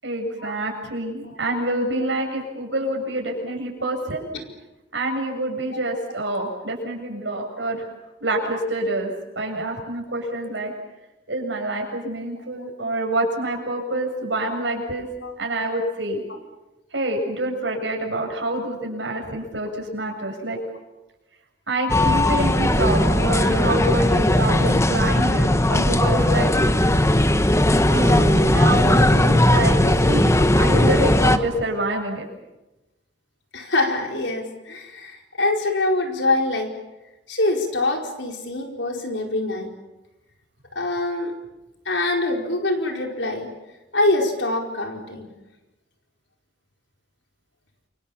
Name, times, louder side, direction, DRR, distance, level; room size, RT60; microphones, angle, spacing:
voice 1, 0.0-4.3 4.9-7.9 8.2-10.7 11.3-15.1 15.4-16.2 16.9-20.6 21.7-26.5 27.9-32.2, right 1 dB, 85° right, 2 dB, 7.5 m, -27 dB
sound 1, 21.9-31.4, left 1 dB, 15° left, 1.2 m, -18 dB
voice 2, 33.5-36.7 37.3-39.7 40.7-41.3 41.8-43.5 43.9-45.3, left 2 dB, 80° left, 2 dB, 4.7 m, -24 dB
28.5 x 25.0 x 7.3 m, 1.0 s
head